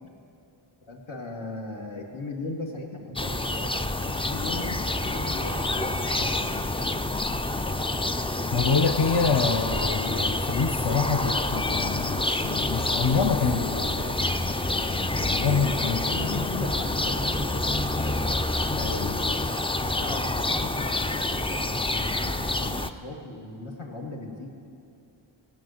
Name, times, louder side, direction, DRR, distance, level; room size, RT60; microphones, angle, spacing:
voice 1, 0.8-3.8 4.0-6.3 15.2-15.6 16.1-17.9 19.8-24.5, left 2 dB, 75° left, -1 dB, 2.2 m, -38 dB
sound 1, 3.2-22.9, left 2 dB, 15° left, 0.3 m, -27 dB
voice 2, 8.5-14.4 15.2-16.3 18.7-19.4, left 5 dB, 50° left, 4 dB, 0.7 m, -27 dB
17.5 x 6.3 x 9.2 m, 2.5 s
wide cardioid pair, 70°, 50 cm